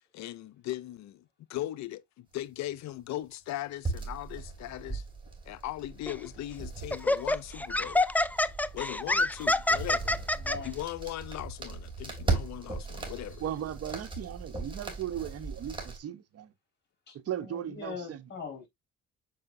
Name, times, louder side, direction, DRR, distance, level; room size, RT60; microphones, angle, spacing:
voice 1, 0.1-1.2 1.5-5.0 5.5-8.0 8.7-10.2 10.6-13.4, left 14 dB, 70° left, 0.6 m, -38 dB
sound 1, 3.8-16.0, right 3 dB, 15° right, 3.1 m, -38 dB
Laughter, 6.1-6.3 6.9-10.6, left 2 dB, 5° left, 0.3 m, -26 dB
voice 2, 10.4-10.8 17.1-18.7, left 5 dB, 35° left, 4.8 m, -41 dB
voice 3, 13.4-16.5 17.1-18.2, right 10 dB, 55° right, 1.0 m, -37 dB
6.9 x 5.4 x 2.6 m
cardioid pair, 95°, 29 cm